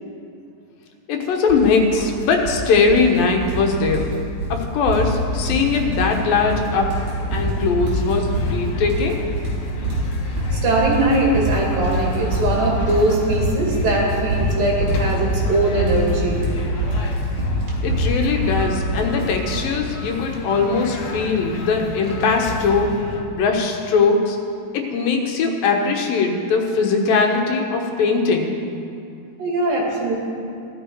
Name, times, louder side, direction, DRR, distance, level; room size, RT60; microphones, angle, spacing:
voice 1, 1.1-4.1 4.5-6.9 7.3-9.2 17.8-22.9 23.3-24.4 24.7-28.5, left 4 dB, 85° left, 2 dB, 3.0 m, -20 dB
sound 1, 1.5-1.7 2.0-2.6 2.9-3.6 3.9-4.1 4.4-4.6 4.9-5.6 5.9-6.5 6.8-19.6, right 1 dB, 60° right, 5.0 m, -24 dB
sound 2, 5.3-23.2, left 3 dB, 65° left, 2.3 m, -33 dB
voice 2, 10.5-16.5 29.4-30.1, right 2 dB, 80° right, -3 dB, 4.0 m, -21 dB
15.5 x 12.0 x 4.6 m, 2.5 s
omnidirectional pair, 4.0 m